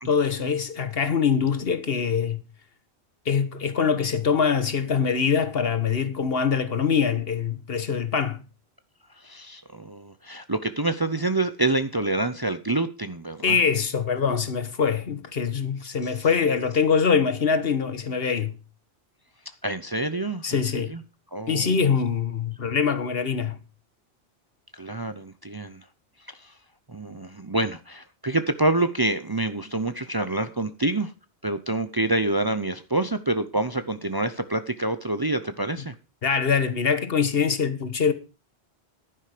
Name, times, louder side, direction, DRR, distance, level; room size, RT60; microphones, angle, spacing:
voice 1, 0.0-2.4 3.2-8.4 13.4-18.6 20.4-20.9 21.5-23.6 36.2-38.1, left 6 dB, 65° left, 1.4 m, -24 dB
voice 2, 9.2-13.6 16.0-16.1 19.6-21.0 21.3-21.8 24.7-25.8 26.3-26.5 26.9-31.1 31.4-35.9, right 2 dB, 25° right, 0.6 m, -27 dB
11.0 x 10.5 x 4.9 m
omnidirectional pair, 1.1 m